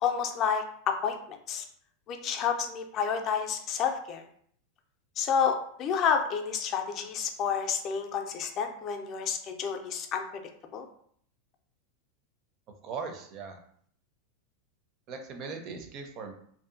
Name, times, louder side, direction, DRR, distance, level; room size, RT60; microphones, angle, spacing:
voice 1, 0.0-1.6 2.1-4.2 5.2-10.2 10.7-10.9, left 7 dB, 40° left, 5 dB, 0.4 m, -30 dB
voice 2, 12.8-13.6 15.1-16.3, right 5 dB, 45° right, 5 dB, 0.5 m, -39 dB
2.6 x 2.4 x 2.5 m, 0.62 s
hypercardioid pair, 95°, 0 cm